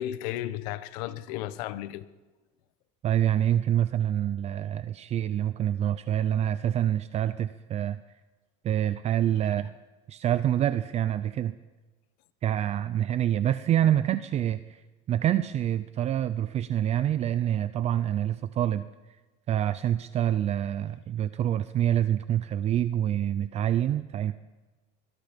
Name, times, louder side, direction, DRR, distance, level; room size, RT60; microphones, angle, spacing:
voice 1, 0.0-2.0, left 13 dB, 80° left, 1.2 m, -34 dB
voice 2, 3.0-8.0 8.6-9.7 10.1-11.6 12.4-14.8 15.1-18.9 19.5-24.3, right 11 dB, 30° right, 0.6 m, -26 dB
26.0 x 22.0 x 5.3 m
cardioid pair, 155°, 20 cm